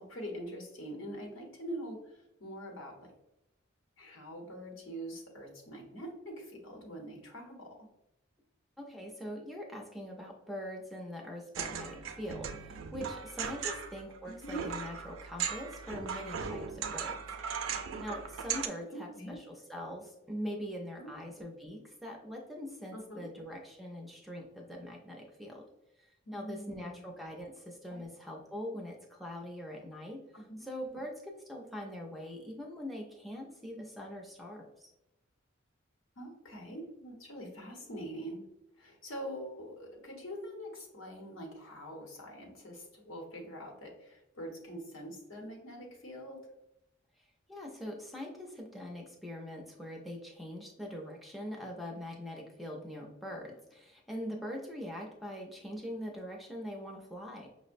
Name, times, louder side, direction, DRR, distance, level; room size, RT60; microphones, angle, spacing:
voice 1, 0.0-3.1 4.0-7.9 14.3-14.6 18.9-19.4 21.0-21.1 22.9-23.3 26.3-27.0 27.9-28.0 30.3-30.7 36.2-38.4 38.8-46.4, equal, 75° left, 0 dB, 1.0 m, -44 dB
voice 2, 8.8-17.2 18.0-25.6 26.0-34.9 47.5-57.5, equal, ahead, 0 dB, 0.4 m, -43 dB
sound 1, 11.5-18.7, right 6 dB, 80° right, 0.4 m, -38 dB
5.5 x 2.1 x 2.5 m, 0.88 s
head